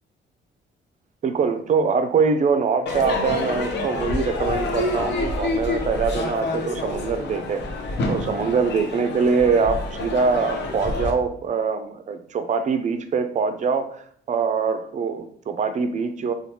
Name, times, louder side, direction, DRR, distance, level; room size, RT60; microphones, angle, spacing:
voice 1, 1.2-14.0 14.3-16.3, right 5 dB, 40° right, 9 dB, 0.4 m, -23 dB
Crowd / Fireworks, 2.9-11.1, left 2 dB, 60° left, 0.6 m, -27 dB
3.0 x 2.3 x 2.9 m, 0.62 s
cardioid pair, 90°, 20 cm